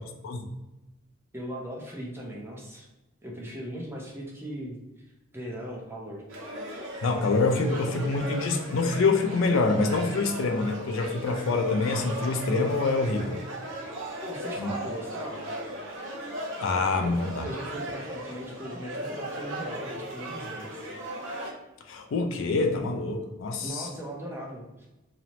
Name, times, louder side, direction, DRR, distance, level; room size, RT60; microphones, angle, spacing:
voice 1, 1.3-2.9 3.2-4.8 5.3-6.2 14.2-15.5 17.0-20.9 23.6-24.9, equal, 10° right, -2 dB, 0.4 m, -38 dB
sound 1, 6.3-21.5, equal, 65° right, 0.6 m, -37 dB
voice 2, 7.0-13.4 14.6-14.7 16.6-17.4 21.9-23.9, left 3 dB, 70° left, 5 dB, 0.3 m, -26 dB
2.9 x 2.0 x 2.8 m, 1.0 s
head